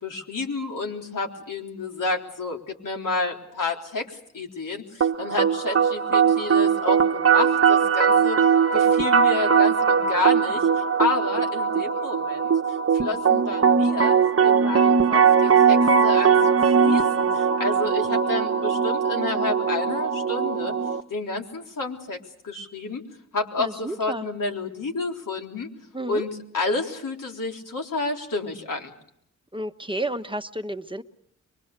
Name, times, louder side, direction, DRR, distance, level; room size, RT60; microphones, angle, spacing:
voice 1, 0.0-8.4 8.7-14.2 14.4-20.8 21.1-22.2 22.4-23.0 23.3-25.7 26.1-28.9, left 3 dB, 80° left, 1 dB, 3.8 m, -30 dB
sound 1, 5.0-21.0, right 6 dB, 45° right, 1.0 m, -20 dB
voice 2, 23.6-24.3 25.9-26.3 29.5-31.0, right 1 dB, 15° right, 7 dB, 1.2 m, -31 dB
24.5 x 22.5 x 6.7 m, 0.73 s
cardioid pair, 50°, 32 cm